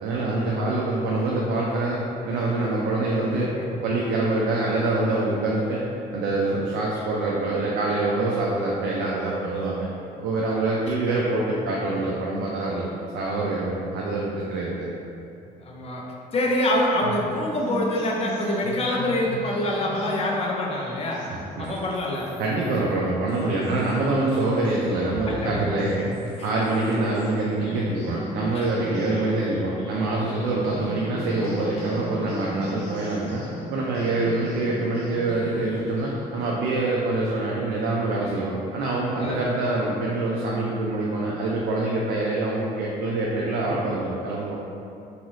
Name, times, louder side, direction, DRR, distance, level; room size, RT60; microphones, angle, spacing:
voice 1, 0.0-3.5 3.8-5.8 6.1-9.9 10.2-12.9 13.1-14.9 21.6-21.7 22.4-44.6, right 2 dB, 85° right, -4 dB, 0.4 m, -25 dB
voice 2, 3.3-3.7 10.8-10.9 12.0-12.1 15.6-16.0 16.3-21.3 21.6-22.4 25.3-25.7 26.0-26.5 28.5-28.7 39.2-39.4 41.5-41.6 43.7-43.8, left 1 dB, 35° left, -2 dB, 0.5 m, -26 dB
sound 1, 17.6-36.4, equal, 85° left, 0.7 m, -39 dB
2.6 x 2.4 x 3.0 m, 2.7 s
cardioid pair, 110°, 17 cm